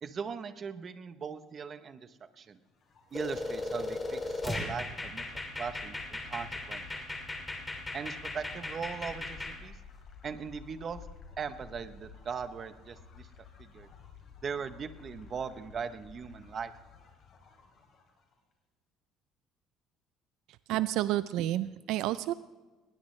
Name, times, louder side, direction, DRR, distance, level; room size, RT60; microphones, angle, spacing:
voice 1, 0.0-2.6 3.1-5.2 5.6-7.0 7.9-9.8 10.2-11.1 11.4-13.3 13.6-13.9 14.4-16.7, right 6 dB, 30° right, 12 dB, 0.8 m, -39 dB
sound 1, 2.7-18.3, left 5 dB, 40° left, 3.3 m, -53 dB
sound 2, 3.1-9.6, left 2 dB, 10° left, 2.2 m, -37 dB
voice 2, 20.7-22.3, right 14 dB, 65° right, 15 dB, 0.4 m, -30 dB
19.5 x 19.5 x 3.2 m, 1.2 s
cardioid pair, 170°, 0 cm